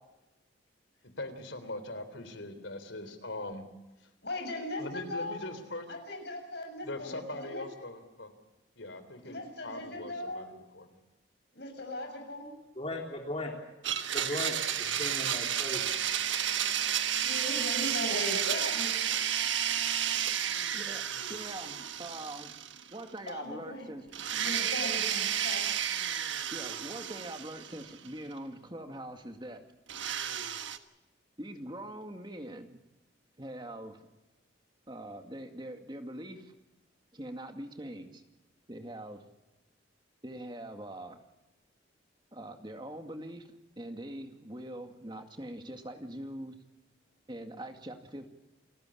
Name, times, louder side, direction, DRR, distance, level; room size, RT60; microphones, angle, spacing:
voice 1, 1.2-3.7 4.0-4.1 4.8-5.9 6.8-8.3 8.8-11.0, left 2 dB, 80° left, 10 dB, 3.5 m, -41 dB
voice 2, 4.2-5.5 5.9-7.7 9.2-10.5 11.6-12.5 17.2-18.9 23.3-23.9 24.3-25.7, left 1 dB, 60° left, 4 dB, 7.1 m, -38 dB
voice 3, 12.8-13.5 14.1-15.9, left 1 dB, 30° left, 1 dB, 3.5 m, -37 dB
Domestic sounds home sounds, 13.8-23.0 23.3-23.4 24.1-28.1 29.9-30.8, right 9 dB, 75° right, 1.4 m, -32 dB
voice 4, 21.3-22.5 22.9-24.1 26.5-29.7 31.4-32.8 33.4-34.0 34.9-36.5 37.1-38.2 38.7-39.2 40.2-41.2 42.3-46.6 47.3-48.3, right 1 dB, 25° right, 5 dB, 2.1 m, -43 dB
29.0 x 14.0 x 8.6 m, 1.1 s
head